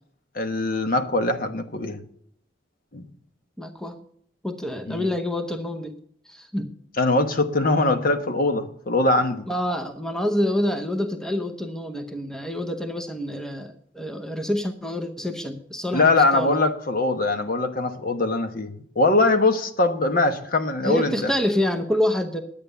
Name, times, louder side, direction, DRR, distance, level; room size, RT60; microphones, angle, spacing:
voice 1, 0.3-2.0 2.9-3.0 4.9-5.1 7.0-9.4 15.9-21.3, left 2 dB, 50° left, 1.1 m, -22 dB
voice 2, 3.6-3.9 4.4-6.0 6.3-6.7 9.5-16.6 20.8-22.4, equal, 5° left, 0.8 m, -27 dB
10.5 x 8.7 x 6.8 m
head